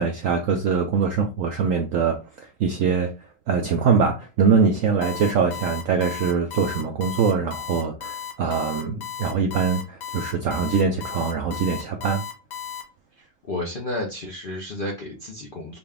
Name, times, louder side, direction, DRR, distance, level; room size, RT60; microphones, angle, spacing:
voice 1, 0.0-3.1 3.5-12.2, right 5 dB, 75° right, 0.7 m, -23 dB
Alarm, 5.0-12.8, left 9 dB, 80° left, 1.4 m, -34 dB
voice 2, 13.2-15.8, left 1 dB, 60° left, 0.5 m, -32 dB
4.0 x 2.2 x 3.5 m
omnidirectional pair, 1.9 m